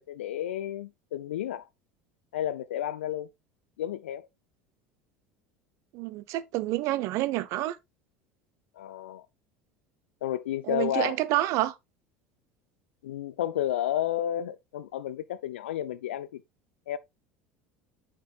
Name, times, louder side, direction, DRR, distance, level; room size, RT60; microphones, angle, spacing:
voice 1, 0.0-1.6 2.3-3.3 3.8-4.3 8.8-9.2 10.2-11.2 13.0-16.4 16.9-17.0, left 11 dB, 75° left, 0.4 m, -31 dB
voice 2, 5.9-7.8 10.7-11.7, right 16 dB, 55° right, 0.6 m, -28 dB
9.1 x 6.2 x 2.4 m
figure-of-eight pair, 70°, 6 cm